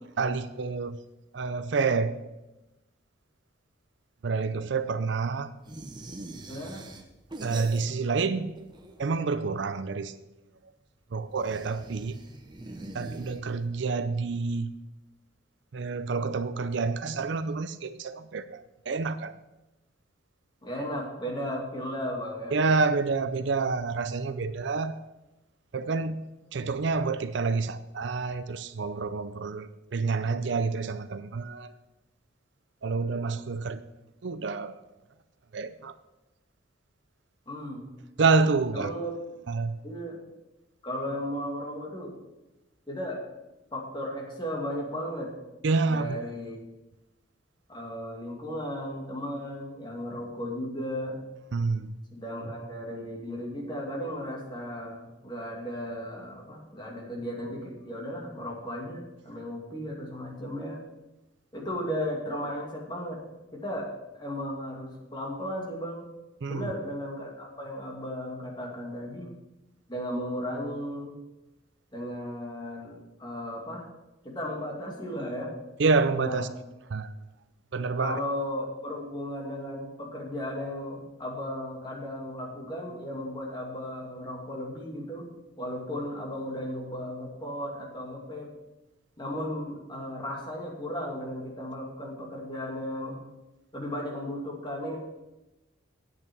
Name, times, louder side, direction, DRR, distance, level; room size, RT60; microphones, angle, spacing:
voice 1, 0.2-1.0 1.3-2.2 4.2-5.5 7.4-8.5 9.0-10.1 11.1-12.2 12.9-14.7 15.7-19.3 22.5-25.0 25.7-26.2 26.5-31.7 32.8-33.8 34.2-34.8 35.5-35.9 38.2-38.9 39.5-39.8 45.6-46.2 51.5-51.9 66.4-66.6 75.8-76.5 76.9-77.1 77.7-78.2, right 4 dB, 60° right, 0.5 m, -28 dB
sound 1, 5.6-8.2 8.5-9.3 11.3-13.8, right 2 dB, 20° right, 0.8 m, -43 dB
voice 2, 6.5-6.9 20.6-22.6 37.5-37.9 38.7-39.1 39.8-40.2 40.8-42.1 42.9-43.2 43.7-45.3 45.9-46.6 47.7-51.2 52.1-60.8 61.5-63.2 63.5-63.9 64.1-66.1 66.4-69.3 69.9-71.1 71.9-73.9 74.2-75.5 76.2-76.5 78.0-85.3 85.6-88.5 89.2-93.2 93.7-95.0, equal, 25° left, 2.5 m, -35 dB
9.1 x 8.3 x 6.2 m
head